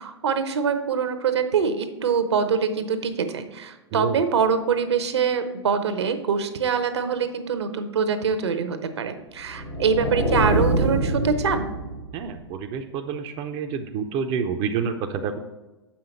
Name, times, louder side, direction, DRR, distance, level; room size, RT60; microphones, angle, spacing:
voice 1, 0.0-11.7, right 6 dB, 70° right, 9 dB, 0.9 m, -24 dB
sound 1, 9.4-12.4, right 1 dB, 85° left, 2.6 m, -25 dB
voice 2, 12.1-15.4, right 6 dB, 35° right, 6 dB, 0.5 m, -28 dB
7.4 x 5.7 x 4.3 m, 1.1 s
figure-of-eight pair, 100°, 15 cm